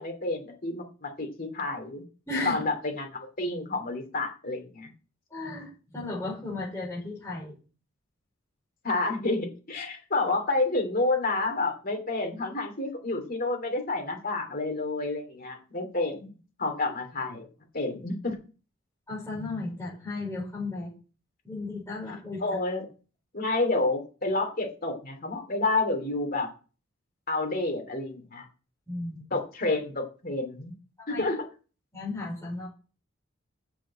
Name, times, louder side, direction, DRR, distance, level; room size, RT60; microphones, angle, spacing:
voice 1, 0.0-2.0 2.4-4.9 8.8-16.3 16.6-17.4 17.7-18.3 22.4-22.9 23.3-26.5 27.3-28.4 29.3-30.7 31.1-31.4, left 2 dB, 45° left, 4 dB, 2.9 m, -29 dB
voice 2, 5.3-5.7 5.9-7.6 19.1-20.9 21.4-22.4 28.9-29.2 31.0-31.2 31.9-32.7, left 2 dB, 15° left, -8 dB, 5.1 m, -34 dB
7.4 x 7.2 x 7.7 m, 0.36 s
head